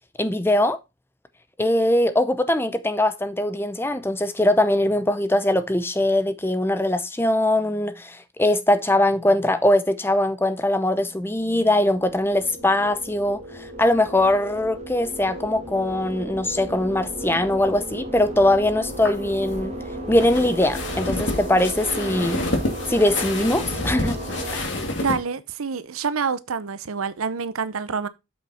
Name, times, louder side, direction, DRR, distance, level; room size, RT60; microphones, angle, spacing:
voice 1, 0.2-0.8 1.6-19.7 20.1-22.4 22.9-24.2, left 1 dB, 10° left, 0.6 m, -21 dB
sound 1, 11.0-24.6, right 1 dB, 30° right, 1.9 m, -35 dB
sound 2, 18.9-25.2, left 2 dB, 60° left, 2.4 m, -29 dB
voice 2, 25.0-28.1, right 5 dB, 90° right, 0.7 m, -27 dB
7.7 x 5.8 x 4.2 m
head